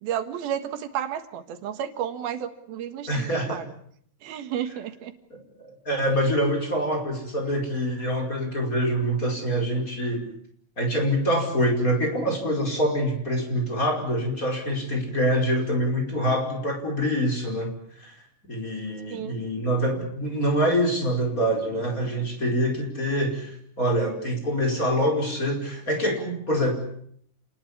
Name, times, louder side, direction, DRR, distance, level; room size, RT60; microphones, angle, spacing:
voice 1, 0.0-3.7 4.2-5.1 19.1-19.4, right 9 dB, 90° right, 9 dB, 3.5 m, -32 dB
voice 2, 3.1-3.6 5.3-10.3 10.8-18.2 18.5-23.5 23.8-26.7, equal, 20° left, 2 dB, 5.2 m, -25 dB
28.5 x 20.0 x 8.4 m, 0.67 s
omnidirectional pair, 4.2 m